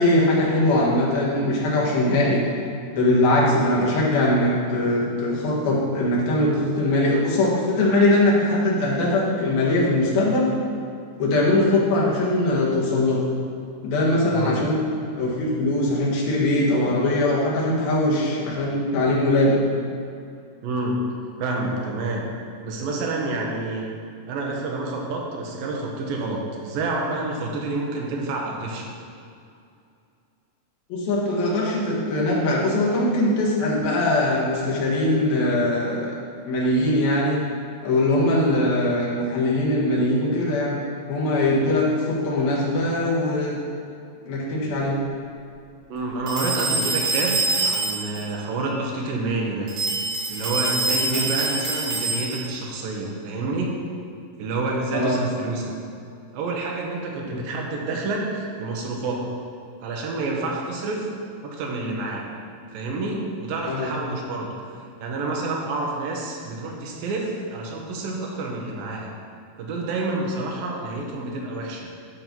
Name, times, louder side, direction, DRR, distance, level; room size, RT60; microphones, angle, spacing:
voice 1, 0.0-2.4 2.9-10.5 11.2-13.2 13.8-14.8 15.2-19.6 30.9-36.1 36.5-37.4 37.8-40.8 41.1-43.6 44.3-45.0 51.1-51.3 54.9-55.2 57.3-57.5 63.6-63.9, left 1 dB, 90° left, -5 dB, 3.6 m, -21 dB
voice 2, 20.6-21.1 21.4-22.2 22.6-23.9 24.3-28.9 45.9-49.7 50.3-53.8 54.4-55.7 56.3-59.3 59.8-61.1 61.4-62.2 62.7-64.5 65.0-69.1 69.6-71.9, right 2 dB, 80° right, 0 dB, 2.9 m, -28 dB
sound 1, 46.3-48.2 49.7-52.6, right 3 dB, 45° right, 1.9 m, -25 dB
12.0 x 5.4 x 4.5 m, 2.5 s
omnidirectional pair, 4.1 m